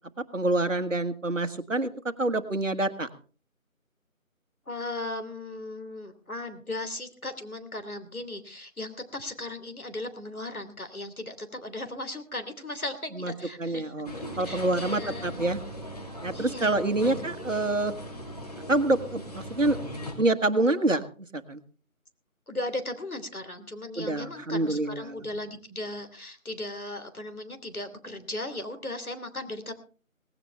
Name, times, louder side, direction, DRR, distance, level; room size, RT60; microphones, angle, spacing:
voice 1, 0.3-1.9 2.2-3.1 13.2-13.3 13.6-15.6 16.2-17.9 18.7-19.8 20.2-21.0 21.3-21.6 24.0-25.2, right 2 dB, 60° right, 10 dB, 1.6 m, -26 dB
voice 2, 4.7-13.9 14.4-15.5 16.3-17.1 22.5-29.7, left 2 dB, 80° left, 8 dB, 3.2 m, -37 dB
sound 1, 14.1-20.1, equal, 25° left, 2.8 m, -39 dB
18.0 x 16.5 x 3.4 m, 0.39 s
figure-of-eight pair, 165°, 42 cm